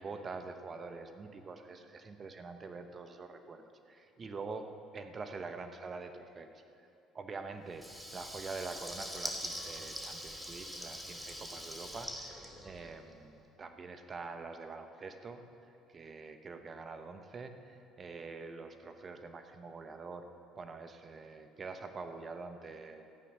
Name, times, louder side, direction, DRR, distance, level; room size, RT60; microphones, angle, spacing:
voice 1, 0.0-6.5 7.1-15.4 15.9-20.3 20.6-23.1, right 4 dB, 35° right, 7 dB, 1.1 m, -45 dB
Water tap faucet / Liquid, 7.7-13.2, equal, 5° right, 1.9 m, -43 dB
14.0 x 9.1 x 6.2 m, 2.7 s
supercardioid pair, 80°, 0 cm